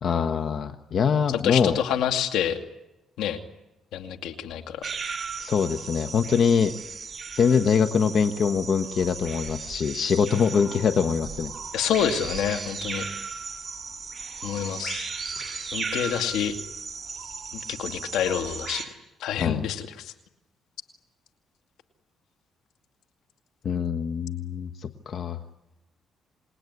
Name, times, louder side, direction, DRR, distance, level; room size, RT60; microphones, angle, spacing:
voice 1, 0.0-1.8 5.4-6.7 7.3-11.5 19.4-19.7 23.6-25.4, left 6 dB, 55° left, 9 dB, 1.3 m, -24 dB
voice 2, 1.4-2.6 3.2-3.4 3.9-4.9 11.7-13.1 14.4-15.1 15.7-16.5 17.5-18.8 19.2-20.1, left 9 dB, 85° left, 7 dB, 2.4 m, -27 dB
sound 1, 4.8-18.9, right 5 dB, 35° right, 5.1 m, -36 dB
28.0 x 20.0 x 9.8 m, 0.99 s
cardioid pair, 90°, 0 cm